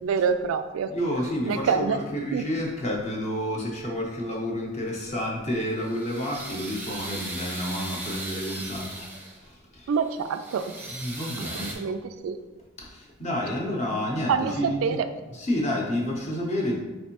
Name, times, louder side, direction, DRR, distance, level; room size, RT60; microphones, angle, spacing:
voice 1, 0.0-0.9 1.5-2.0 2.3-2.4 9.9-10.7 11.5-12.4 14.3-15.1, right 6 dB, 90° right, 10 dB, 0.3 m, -26 dB
voice 2, 0.9-9.1 9.4-9.9 10.9-11.7 12.8-15.0 15.3-16.8, equal, 35° left, -1 dB, 0.7 m, -30 dB
sound 1, 5.5-9.5 10.0-11.7, right 2 dB, 10° right, 0.6 m, -38 dB
4.3 x 3.2 x 2.9 m, 1.1 s
head